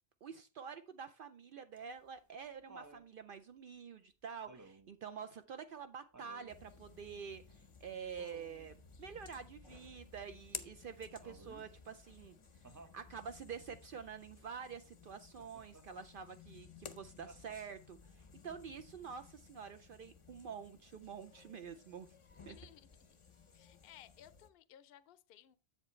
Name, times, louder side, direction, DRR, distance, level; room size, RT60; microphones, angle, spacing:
voice 1, 0.2-7.4 7.8-12.3 12.9-22.1 22.5-22.6, right 6 dB, 60° right, 0.7 m, -48 dB
Laughter, 1.8-3.1 4.5-5.0 6.1-6.6 8.2-8.7 11.2-11.7 12.6-13.0 15.4-15.9 17.3-17.9 19.3-19.4, right 2 dB, 25° right, 0.4 m, -57 dB
sound 1, 6.5-24.5, left 5 dB, 35° left, 0.6 m, -56 dB
voice 2, 22.3-23.2 23.5-25.6, left 11 dB, 70° left, 0.7 m, -60 dB
7.8 x 7.3 x 3.1 m
omnidirectional pair, 1.1 m